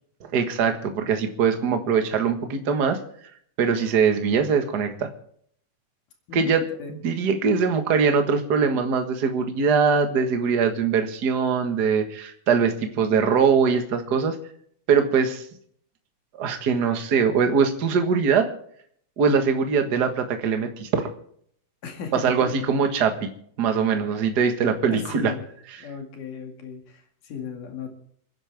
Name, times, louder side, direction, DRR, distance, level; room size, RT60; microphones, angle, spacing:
voice 1, 0.2-3.0 3.6-5.1 6.3-6.7 7.0-14.4 14.9-15.4 16.4-18.5 19.2-21.1 22.1-23.3 23.6-25.3, right 6 dB, 40° right, 6 dB, 1.5 m, -22 dB
voice 2, 6.3-6.9 21.8-22.5 24.9-25.5 25.8-27.9, left 6 dB, 75° left, 4 dB, 3.8 m, -36 dB
28.0 x 10.5 x 3.5 m, 0.64 s
omnidirectional pair, 3.7 m